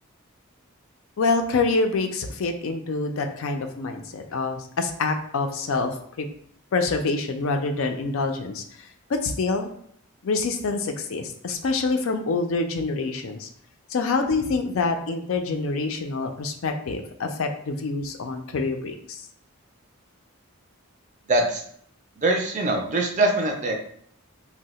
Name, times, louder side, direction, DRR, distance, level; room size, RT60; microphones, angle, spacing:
voice 1, 1.2-5.9 6.2-6.3 6.7-9.7 10.2-13.5 13.9-19.2, left 3 dB, 65° left, 5 dB, 0.4 m, -26 dB
voice 2, 21.3-21.6 22.2-23.7, right 2 dB, 35° right, 2 dB, 0.4 m, -23 dB
2.7 x 2.0 x 4.0 m, 0.66 s
head